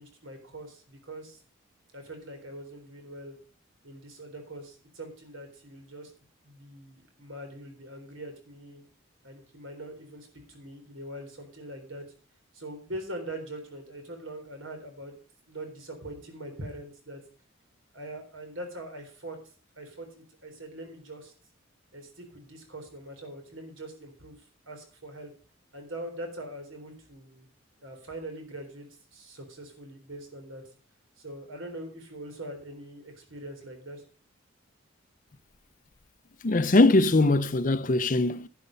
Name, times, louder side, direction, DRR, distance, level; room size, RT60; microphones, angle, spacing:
voice 1, 0.0-1.4 1.9-3.4 3.8-6.1 6.4-8.8 9.2-12.1 12.5-15.1 15.5-17.2 17.9-19.4 19.8-21.3 21.9-25.3 25.7-27.5 27.8-28.9 29.1-30.6 31.2-34.0, right 1 dB, 75° right, 3.9 m, -42 dB
voice 2, 36.4-38.5, left 2 dB, 40° left, 0.6 m, -21 dB
11.0 x 10.0 x 5.2 m
head